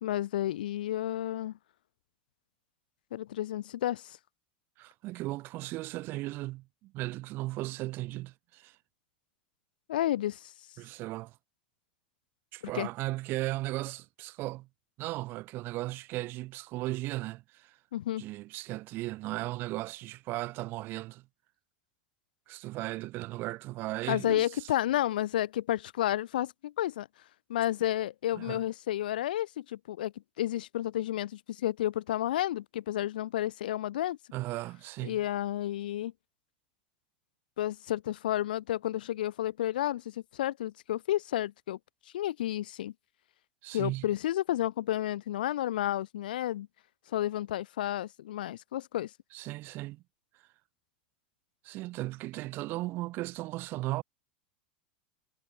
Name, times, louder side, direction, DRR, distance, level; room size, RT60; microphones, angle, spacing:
voice 1, 0.0-1.5 3.1-4.2 9.9-10.5 12.7-12.9 17.9-18.2 24.1-27.1 27.5-34.2 35.0-36.1 37.6-41.8 42.1-42.9 43.7-46.7 47.1-49.1, left 13 dB, 65° left, 0.4 m, -31 dB
voice 2, 4.8-8.8 10.8-11.4 12.5-14.7 15.0-17.8 18.2-21.3 22.5-24.7 28.3-28.6 34.3-35.2 43.6-44.1 49.3-50.0 51.6-54.0, right 18 dB, 45° right, 2.1 m, -36 dB
figure-of-eight pair, 85°, 5 cm